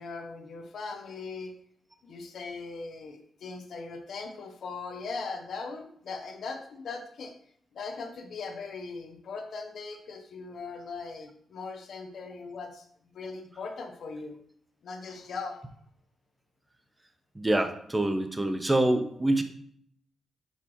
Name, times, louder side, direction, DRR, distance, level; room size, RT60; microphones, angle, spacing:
voice 1, 0.0-1.5 2.0-7.3 7.7-12.9 13.1-14.4 14.8-15.6, left 4 dB, 70° left, 5 dB, 0.9 m, -39 dB
voice 2, 17.3-19.4, right 1 dB, 20° right, 8 dB, 0.9 m, -25 dB
5.9 x 5.7 x 3.1 m, 0.65 s
supercardioid pair, 50°, 0 cm